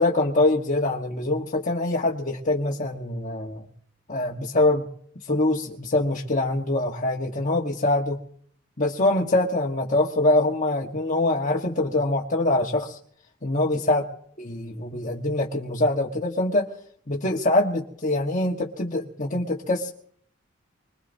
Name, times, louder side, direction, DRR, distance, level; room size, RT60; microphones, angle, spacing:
voice 1, 0.0-3.6 4.1-4.8 5.3-8.2 8.8-13.0 13.4-14.0 14.5-16.7 17.1-19.9, left 2 dB, 35° left, -2 dB, 1.2 m, -24 dB
25.5 x 20.5 x 2.6 m, 0.63 s
head